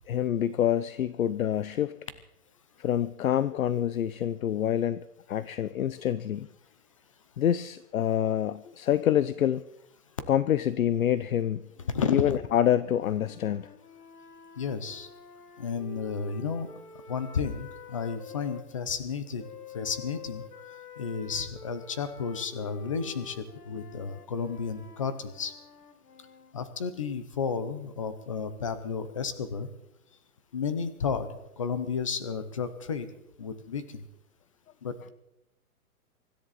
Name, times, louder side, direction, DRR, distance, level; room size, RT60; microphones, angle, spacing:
voice 1, 0.1-2.0 2.8-6.5 7.4-9.6 10.3-11.6 12.1-13.7, left 10 dB, 65° left, 16 dB, 0.7 m, -26 dB
sound 1, 11.7-18.7 19.4-26.6, left 7 dB, 90° left, 2.2 m, -49 dB
voice 2, 11.9-12.4 14.6-15.1 15.6-16.7 17.1-19.4 19.7-20.4 21.0-25.5 26.5-29.7 30.5-33.1 33.4-34.0 34.8-35.1, left 5 dB, 20° left, 12 dB, 0.7 m, -32 dB
24.5 x 13.5 x 4.1 m, 0.85 s
hypercardioid pair, 180°, 45 cm